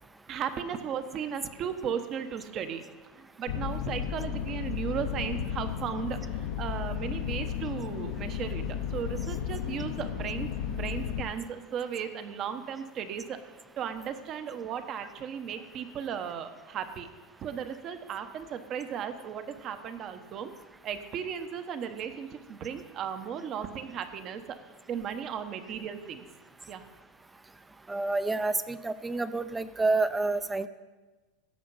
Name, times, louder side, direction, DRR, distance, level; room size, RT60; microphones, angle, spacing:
voice 1, 0.3-2.8 3.1-13.4 13.8-17.1 17.4-20.5 20.8-24.6 24.9-26.2 26.7-26.8, right 8 dB, 35° right, 9 dB, 1.0 m, -36 dB
sound 1, 3.5-11.2, left 9 dB, 75° left, 0.9 m, -34 dB
voice 2, 27.9-30.7, right 3 dB, 10° right, 14 dB, 0.5 m, -28 dB
16.0 x 6.5 x 5.6 m, 1.3 s
supercardioid pair, 135°, 0 cm